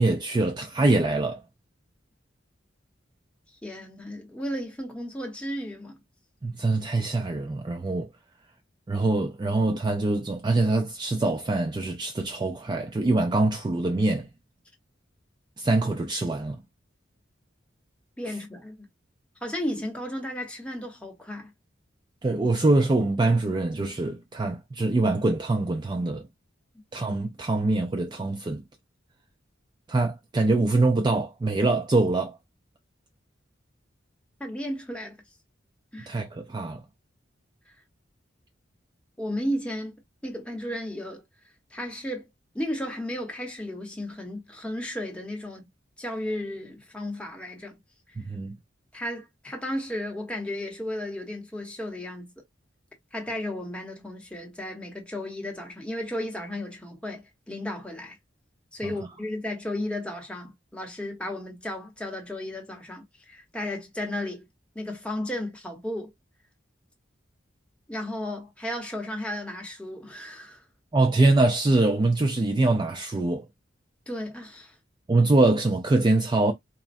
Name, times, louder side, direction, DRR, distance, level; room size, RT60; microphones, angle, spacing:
voice 1, 0.0-1.4 6.4-8.1 8.9-14.3 15.6-16.6 22.2-26.3 26.9-28.6 29.9-32.4 36.1-36.8 48.2-48.5 70.9-73.5 75.1-76.5, right 2 dB, 25° right, 0.4 m, -24 dB
voice 2, 3.6-6.0 18.2-18.7 19.4-21.5 34.4-35.2 35.9-36.1 39.2-40.0 40.2-41.2 41.7-42.2 42.5-45.6 46.0-47.8 48.9-52.4 53.1-58.2 58.7-64.5 64.7-66.1 67.9-70.6 74.1-74.7, left 1 dB, 5° left, 0.9 m, -34 dB
4.1 x 2.1 x 2.6 m
head